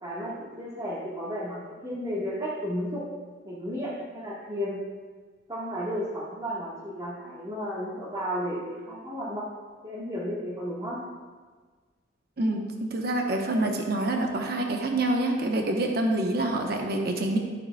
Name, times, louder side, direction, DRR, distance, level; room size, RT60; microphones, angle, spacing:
voice 1, 0.0-3.0 3.4-4.8 5.5-9.5 9.8-11.0 16.4-16.7, equal, 20° right, -8 dB, 1.3 m, -33 dB
voice 2, 12.4-17.4, right 1 dB, 55° right, 2 dB, 0.9 m, -26 dB
12.0 x 6.5 x 2.2 m, 1.5 s
head